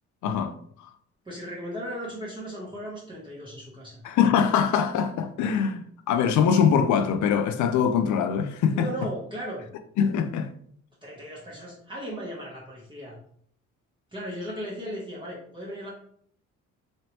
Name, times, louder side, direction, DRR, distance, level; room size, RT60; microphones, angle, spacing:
voice 1, 0.2-0.5 4.0-8.9 10.0-10.5, left 7 dB, 75° left, 0.5 m, -23 dB
voice 2, 1.2-4.0 8.7-9.7 11.0-13.2 14.1-15.9, equal, 15° right, 1.1 m, -36 dB
3.1 x 2.7 x 3.0 m
cardioid pair, 90°, 30 cm